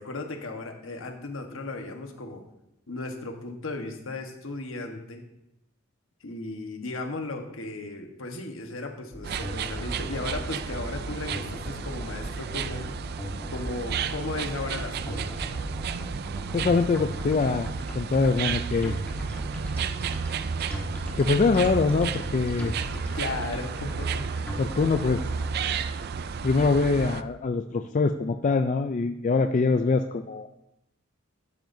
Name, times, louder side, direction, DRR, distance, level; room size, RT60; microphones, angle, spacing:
voice 1, 0.0-2.4 2.9-5.2 6.2-12.8 13.5-15.4 23.1-24.2, left 2 dB, 75° left, 3 dB, 1.3 m, -35 dB
sound 1, 9.1-25.5, equal, 10° left, 1.5 m, -37 dB
sound 2, 9.2-27.2, right 6 dB, 50° right, 0.4 m, -33 dB
voice 2, 16.5-17.7 17.9-19.0 21.2-22.7 24.6-25.2 26.4-30.5, left 4 dB, 40° left, 8 dB, 0.4 m, -24 dB
12.0 x 9.1 x 2.7 m, 0.87 s
head